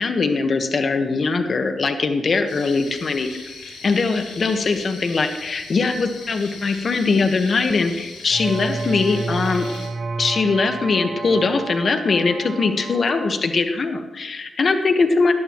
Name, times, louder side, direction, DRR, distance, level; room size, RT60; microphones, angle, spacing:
voice 1, 0.0-9.7 10.2-15.3, left 4 dB, 55° left, 6 dB, 1.3 m, -21 dB
sound 1, 2.5-9.9, left 4 dB, 85° left, 4.6 m, -39 dB
sound 2, 8.3-13.3, right 3 dB, 70° right, 1.9 m, -30 dB
18.5 x 12.5 x 3.1 m, 1.1 s
cardioid pair, 70°, 0 cm